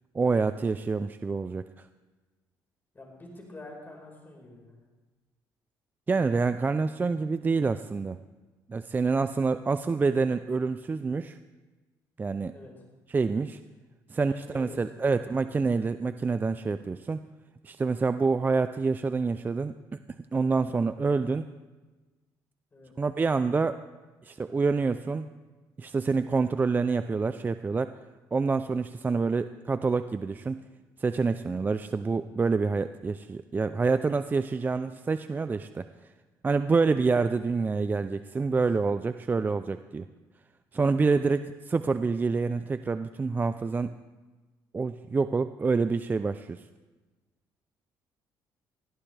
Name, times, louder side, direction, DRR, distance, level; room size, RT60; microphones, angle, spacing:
voice 1, 0.1-1.7 6.1-8.2 8.7-11.4 12.2-12.5 13.1-13.6 14.1-17.3 17.6-20.0 20.3-21.5 23.0-23.8 24.2-25.3 25.8-27.9 28.3-30.6 31.0-35.9 36.4-40.1 40.7-43.9 44.7-46.6, right 4 dB, 20° right, 11 dB, 0.4 m, -27 dB
voice 2, 2.9-4.8 12.5-12.7 14.2-15.2 22.7-22.9 34.5-34.8 38.4-38.6, left 2 dB, 25° left, 0 dB, 4.7 m, -47 dB
20.0 x 14.5 x 3.4 m, 1.2 s
cardioid pair, 100°, 8 cm